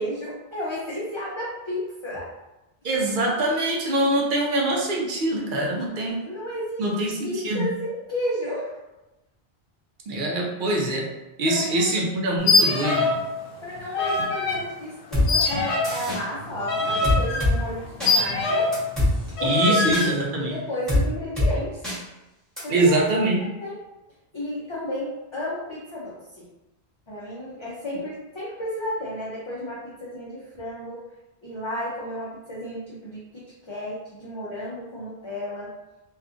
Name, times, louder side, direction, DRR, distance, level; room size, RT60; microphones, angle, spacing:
voice 1, 0.0-2.3 6.2-6.8 7.2-8.8 11.5-11.9 13.6-18.7 19.3-21.8 22.6-23.8 24.3-26.5 27.1-31.0 31.4-35.7, equal, 40° left, -7 dB, 0.4 m, -33 dB
voice 2, 2.8-6.2 6.8-7.7 10.1-11.0 11.4-13.1 19.4-20.6 22.7-23.4, right 1 dB, 55° right, -1 dB, 0.7 m, -24 dB
sound 1, 12.4-13.3 13.5-14.6 15.3-18.8 19.4-20.1, left 3 dB, 90° left, 0.9 m, -23 dB
sound 2, 15.1-15.3 15.8-16.2 17.0-17.5 18.0-18.1 18.7-19.1 19.9-20.1 20.9-21.0 21.4-21.5 21.8-22.0 22.6-22.7, left 1 dB, ahead, 1.0 m, -22 dB
2.7 x 2.4 x 2.4 m, 0.99 s
omnidirectional pair, 1.1 m